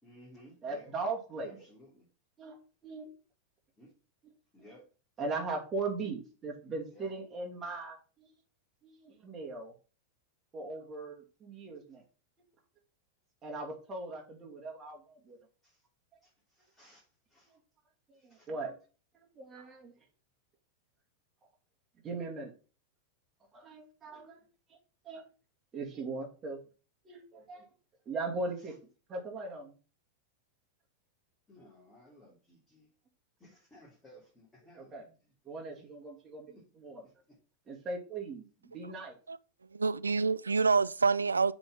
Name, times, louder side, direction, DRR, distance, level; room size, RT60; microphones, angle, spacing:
voice 1, 0.0-0.9 1.4-2.0 3.8-3.9 4.5-4.8 6.9-7.1 15.6-15.8 16.2-17.5 18.2-18.5 31.5-32.9 33.4-35.1 35.8-35.9 36.5-36.6 37.0-37.4, equal, 10° left, 3.0 m, -58 dB
voice 2, 0.6-1.6 2.4-2.6 2.8-3.1 5.2-8.3 8.8-9.7 10.5-12.0 13.4-15.4 17.5-17.6 18.1-18.8 19.2-19.9 22.0-22.5 23.5-24.4 24.7-24.8 25.0-25.2 25.7-26.6 27.0-27.7 28.1-28.8 29.1-29.8 34.7-35.0 35.4-37.0 37.7-39.2, right 3 dB, 20° right, 2.5 m, -39 dB
voice 3, 39.7-41.5, right 4 dB, 75° right, 0.3 m, -27 dB
7.7 x 4.2 x 5.5 m
figure-of-eight pair, 90°, 0 cm